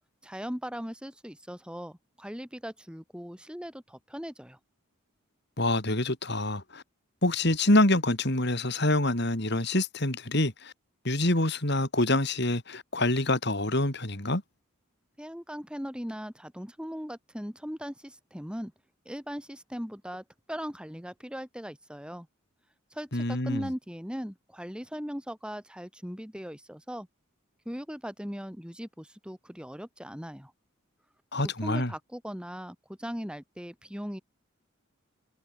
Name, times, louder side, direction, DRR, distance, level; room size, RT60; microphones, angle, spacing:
voice 1, 0.2-4.6 15.2-18.7 19.1-22.3 22.9-27.1 27.7-30.5 31.4-34.2, equal, 5° right, 5.3 m, -39 dB
voice 2, 5.6-6.8 7.2-10.7 11.0-14.4 23.1-23.7 31.3-31.9, left 1 dB, 55° left, 3.9 m, -26 dB
head